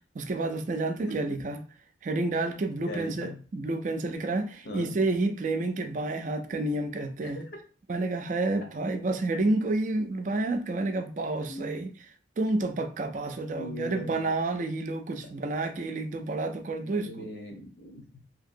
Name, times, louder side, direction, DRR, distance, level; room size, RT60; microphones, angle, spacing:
voice 1, 0.2-1.6 2.0-7.4 7.9-17.3, right 2 dB, 45° right, 0.4 m, -30 dB
voice 2, 2.9-3.4 4.6-4.9 7.2-7.4 11.5-11.8 13.6-14.3 16.8-18.2, left 1 dB, 70° left, 0.9 m, -40 dB
2.8 x 2.8 x 2.5 m
head